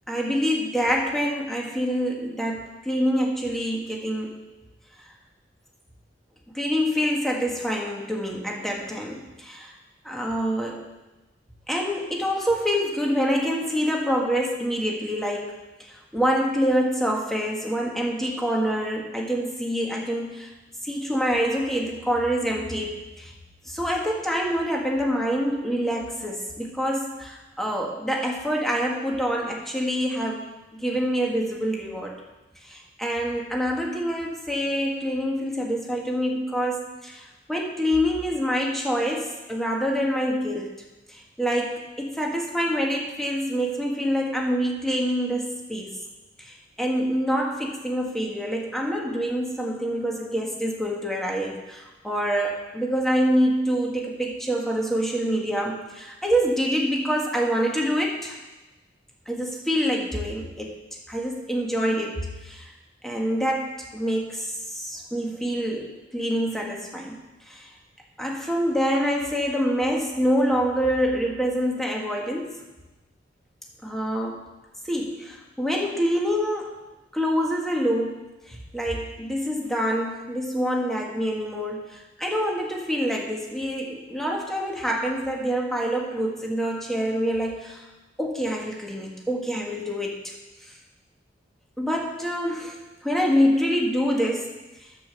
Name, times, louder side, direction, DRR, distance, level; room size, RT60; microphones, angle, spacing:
voice 1, 0.1-4.4 6.5-9.7 10.0-10.9 11.7-20.5 20.8-23.3 23.6-32.1 32.6-40.8 41.1-45.9 46.4-58.4 59.3-60.7 61.1-62.7 63.0-67.2 67.5-67.7 68.2-72.6 73.8-74.4 74.8-76.7 77.1-78.2 78.5-87.8 88.2-90.3 90.6-90.7 91.8-92.8 93.0-94.5 94.8-94.9, equal, ahead, -1 dB, 1.6 m, -26 dB
9.9 x 7.0 x 7.8 m, 1.1 s
head